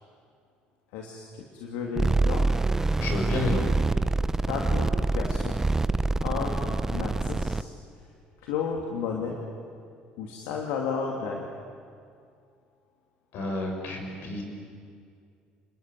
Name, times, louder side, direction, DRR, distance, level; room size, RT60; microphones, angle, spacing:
voice 1, 0.9-2.5 4.5-5.6 6.2-7.7 8.4-9.4 10.2-11.5, left 5 dB, 85° left, 0 dB, 2.8 m, -33 dB
sound 1, 2.0-7.6, right 3 dB, 15° right, 0.8 m, -26 dB
voice 2, 3.0-3.6 13.3-14.4, left 2 dB, 70° left, 4 dB, 6.1 m, -30 dB
27.5 x 21.0 x 9.4 m, 2.3 s
supercardioid pair, 90°, 4 cm